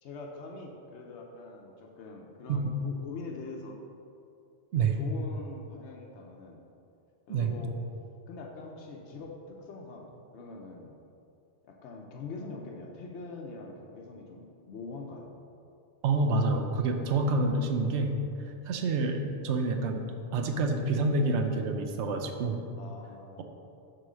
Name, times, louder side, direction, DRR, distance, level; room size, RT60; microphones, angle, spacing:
voice 1, 0.0-3.8 4.7-6.6 7.3-7.7 8.3-11.0 11.6-15.3 19.0-19.7 22.4-23.4, left 3 dB, 90° left, 0 dB, 1.0 m, -44 dB
voice 2, 16.0-18.1 18.7-20.0 20.3-22.6, right 3 dB, 80° right, 5 dB, 0.9 m, -27 dB
7.5 x 3.1 x 6.2 m, 2.6 s
omnidirectional pair, 1.1 m